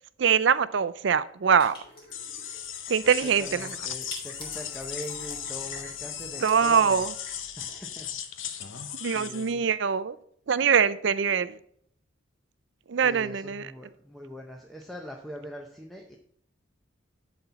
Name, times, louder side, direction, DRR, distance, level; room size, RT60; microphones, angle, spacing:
voice 1, 0.2-1.8 2.9-3.7 6.4-7.1 9.0-10.2 10.5-11.6 12.9-13.7, right 7 dB, 60° right, 16 dB, 0.4 m, -23 dB
sound 1, 1.6-8.2, equal, 25° left, 3.1 m, -47 dB
sound 2, 2.1-9.5, left 9 dB, 70° left, 0.8 m, -37 dB
voice 2, 3.0-7.0 7.6-8.1 8.5-8.8 9.1-9.7 13.0-16.2, equal, ahead, 0 dB, 0.7 m, -42 dB
11.5 x 4.2 x 5.8 m, 0.65 s
head